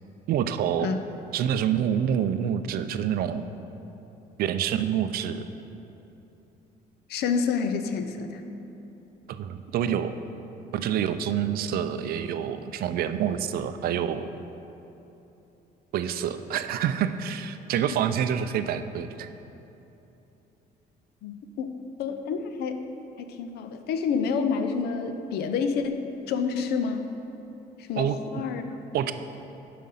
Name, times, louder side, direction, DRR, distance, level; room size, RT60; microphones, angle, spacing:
voice 1, 0.3-0.9 1.3-3.4 4.4-5.4 9.3-10.2 10.7-14.3 15.9-19.3 28.0-28.2 28.9-29.1, right 9 dB, 65° right, 10 dB, 0.4 m, -27 dB
voice 2, 7.1-8.4 21.2-22.9 23.2-27.1 27.8-28.8, left 5 dB, 75° left, 7 dB, 0.6 m, -29 dB
7.5 x 5.1 x 5.6 m, 3.0 s
cardioid pair, 110°, 17 cm